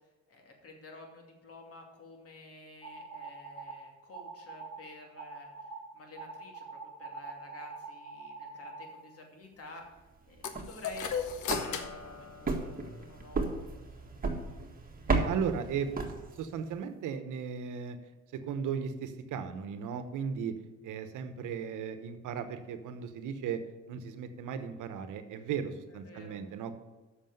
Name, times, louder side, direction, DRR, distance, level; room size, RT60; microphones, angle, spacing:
voice 1, 0.3-5.5 5.9-6.6 7.0-9.8 10.3-12.6 13.0-13.5 25.9-26.4, left 2 dB, 50° left, 2 dB, 2.6 m, -51 dB
sound 1, 2.8-3.8 4.1-4.8 5.2-5.8 6.2-8.9, right 4 dB, 10° right, 3.1 m, -44 dB
sound 2, 10.4-13.1, left 7 dB, 80° left, 1.0 m, -37 dB
sound 3, 10.4-16.7, right 3 dB, 30° right, 1.7 m, -35 dB
voice 2, 15.1-18.0 18.3-20.5 20.8-23.6 23.9-26.8, right 7 dB, 85° right, 9 dB, 1.0 m, -36 dB
7.6 x 6.3 x 7.9 m, 1.2 s
cardioid pair, 90°, 30 cm